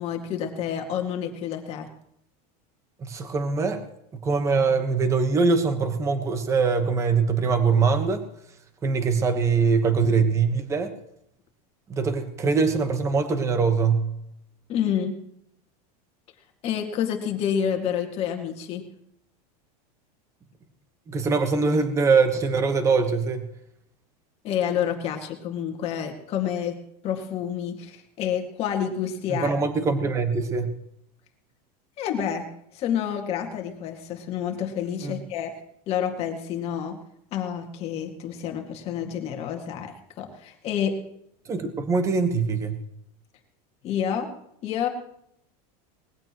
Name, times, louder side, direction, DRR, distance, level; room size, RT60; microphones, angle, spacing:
voice 1, 0.0-1.9 14.7-15.2 16.6-18.9 24.4-29.6 32.0-32.5 32.7-35.6 35.9-37.0 37.3-41.0 43.8-44.3 44.6-44.9, left 8 dB, 30° left, 3 dB, 2.1 m, -29 dB
voice 2, 3.0-3.8 4.2-8.2 8.8-10.9 11.9-14.1 21.1-23.4 29.3-30.7 35.0-35.2 41.5-42.8, right 4 dB, 15° right, 8 dB, 1.2 m, -23 dB
20.5 x 15.5 x 3.0 m, 0.75 s
supercardioid pair, 175°, 20 cm